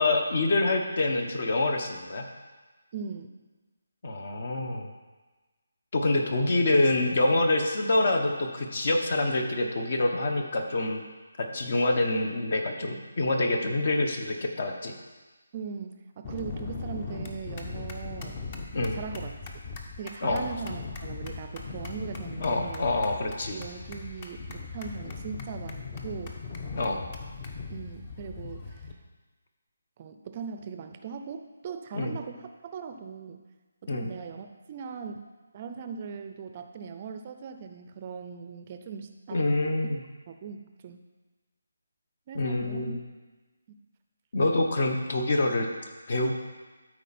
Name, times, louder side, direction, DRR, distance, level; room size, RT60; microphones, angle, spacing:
voice 1, 0.0-2.2 4.0-4.9 5.9-11.0 11.4-15.0 18.7-19.0 20.2-20.5 22.4-23.6 26.8-27.0 31.9-32.2 33.9-34.1 39.3-40.0 42.3-43.0 44.3-45.7 46.1-46.3, left 2 dB, 50° left, 4 dB, 1.2 m, -26 dB
voice 2, 2.9-3.3 15.5-18.4 18.9-19.4 20.0-22.9 23.5-26.3 27.7-28.9 30.0-33.4 33.8-39.5 40.3-41.0 42.3-43.0, right 6 dB, 30° right, 7 dB, 0.5 m, -39 dB
sound 1, 16.2-28.9, left 4 dB, 30° left, 0.9 m, -39 dB
13.0 x 4.5 x 4.3 m, 1.3 s
figure-of-eight pair, 160°, 0 cm